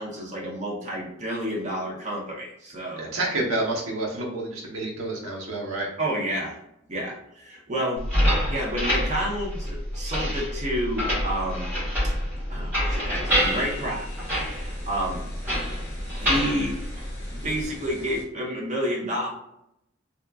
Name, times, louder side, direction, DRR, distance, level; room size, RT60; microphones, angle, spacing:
voice 1, 0.0-3.1 6.0-6.6 6.9-8.0 8.5-11.7 12.0-12.1 12.5-14.1 14.6-15.2 16.2-16.8 17.3-19.3, equal, 35° right, -3 dB, 0.6 m, -30 dB
voice 2, 3.0-5.9, right 2 dB, 85° right, -2 dB, 0.8 m, -29 dB
sound 1, 8.0-17.6, equal, 10° right, 1.1 m, -27 dB
sound 2, 13.2-18.2, equal, 10° left, 0.6 m, -42 dB
2.9 x 2.3 x 2.2 m, 0.79 s
head